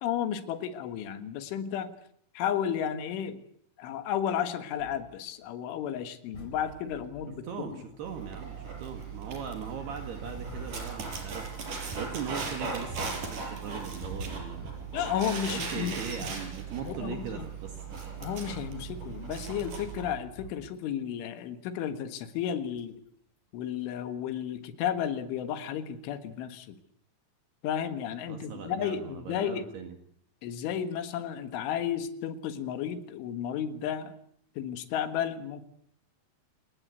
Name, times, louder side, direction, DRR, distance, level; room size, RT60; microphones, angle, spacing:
voice 1, 0.0-1.9 2.4-3.4 3.8-7.8 14.9-16.0 16.8-17.4 18.2-23.0 23.5-26.8 27.6-29.7 30.4-34.1 34.6-35.7, left 9 dB, 85° left, 9 dB, 4.1 m, -33 dB
sound 1, 4.8-8.5 8.9-13.0 13.4-16.4 16.9-17.0 17.3-21.1 21.4-21.5 22.7-23.1 23.8-23.9, left 1 dB, 35° left, 5.4 m, -50 dB
voice 2, 7.3-11.5 12.0-14.8 15.5-17.9 28.3-30.0, right 7 dB, 65° right, 5 dB, 3.7 m, -39 dB
Dog, 8.0-20.1, right 5 dB, 45° right, 6.1 m, -38 dB
28.0 x 19.5 x 8.2 m, 0.65 s
omnidirectional pair, 5.4 m